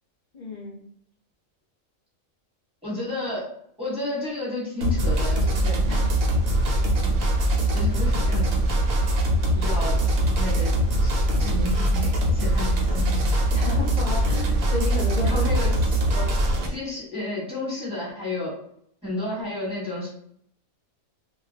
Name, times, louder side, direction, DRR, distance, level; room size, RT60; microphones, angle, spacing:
voice 1, 0.3-0.8 5.9-6.0 13.5-15.4 16.1-16.4, left 3 dB, 45° left, -4 dB, 0.6 m, -32 dB
voice 2, 2.8-3.5 3.8-5.8 7.0-7.1 7.7-8.5 9.5-10.0 10.3-10.7 11.0-13.3 15.2-16.0 16.7-18.6 19.0-20.1, left 2 dB, 5° right, -6 dB, 1.2 m, -31 dB
sound 1, 4.8-16.7, right 1 dB, 85° right, 1.1 m, -22 dB
2.4 x 2.3 x 3.3 m, 0.68 s
omnidirectional pair, 1.4 m